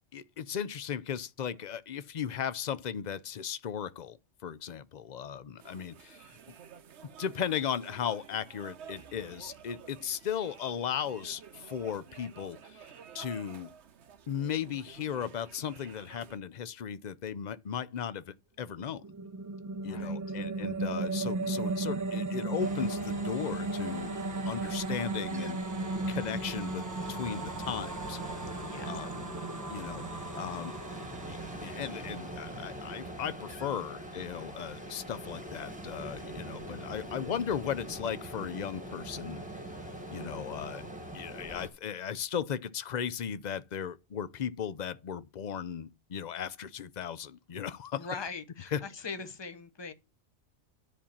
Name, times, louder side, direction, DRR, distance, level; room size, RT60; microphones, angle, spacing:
voice 1, 0.1-4.2 4.4-6.4 7.0-12.9 13.1-13.7 14.3-19.1 19.8-24.1 24.5-25.6 26.1-28.4 28.9-29.1 29.7-30.0 30.3-30.7 31.3-39.4 40.1-40.8 41.1-48.1 48.7-48.8, left 8 dB, 45° left, 0.6 m, -36 dB
sound 1, 5.6-16.4, right 8 dB, 65° right, 1.1 m, -51 dB
sound 2, 18.8-32.2, right 2 dB, 25° right, 0.4 m, -35 dB
voice 2, 19.8-20.4 28.6-28.9 47.9-49.9, left 4 dB, 25° left, 0.9 m, -41 dB
Ocean, 22.6-41.7, right 1 dB, 5° right, 1.4 m, -42 dB
10.0 x 4.2 x 7.2 m
omnidirectional pair, 1.3 m